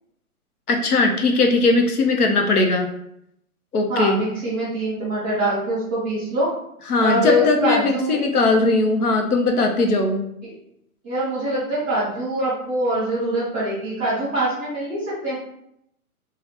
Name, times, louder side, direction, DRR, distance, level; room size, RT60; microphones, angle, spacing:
voice 1, 0.7-2.9 3.7-4.2 6.9-10.2, left 3 dB, 90° left, 3 dB, 0.8 m, -19 dB
voice 2, 3.9-6.5 7.0-8.2 10.4-10.5 11.0-15.3, right 1 dB, 10° left, -14 dB, 0.4 m, -24 dB
3.2 x 2.3 x 2.9 m, 0.76 s
hypercardioid pair, 150°, 44 cm